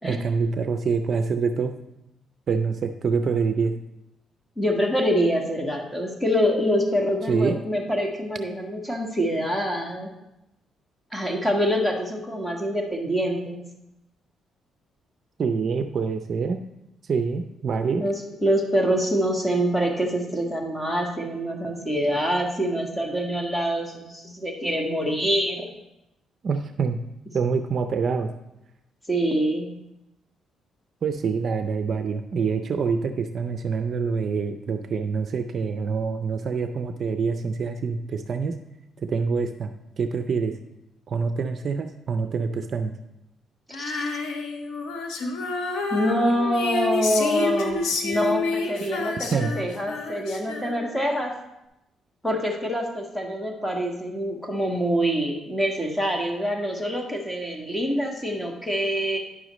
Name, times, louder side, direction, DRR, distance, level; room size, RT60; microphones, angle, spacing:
voice 1, 0.0-1.7 2.5-3.8 7.3-7.6 15.4-16.6 17.1-18.1 26.4-27.0 27.3-28.3 31.0-38.6 39.0-39.7 40.0-40.6 41.1-42.9 49.3-49.5, right 5 dB, 50° right, 8 dB, 0.5 m, -26 dB
voice 2, 4.6-10.1 11.1-13.6 18.0-25.7 29.1-29.7 43.7-44.1 45.9-51.3 52.2-59.2, equal, 5° left, 1 dB, 1.5 m, -25 dB
Female singing, 43.7-51.1, left 3 dB, 80° left, 1.0 m, -29 dB
9.9 x 6.1 x 3.1 m, 0.89 s
cardioid pair, 90°, 0 cm